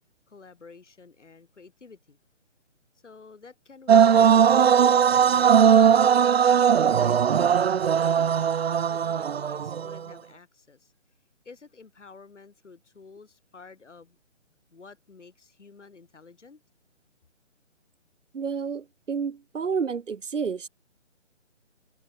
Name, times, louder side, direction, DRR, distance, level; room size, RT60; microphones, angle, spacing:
voice 1, 0.3-2.2 3.0-6.2 6.8-8.6 8.9-10.9 11.4-14.2 14.7-16.6, left 4 dB, 70° left, 6.5 m, -50 dB
sound 1, 3.9-10.0, right 8 dB, 55° right, 0.5 m, -19 dB
voice 2, 18.3-20.7, right 6 dB, 75° right, 1.2 m, -30 dB
figure-of-eight pair, 155°, 37 cm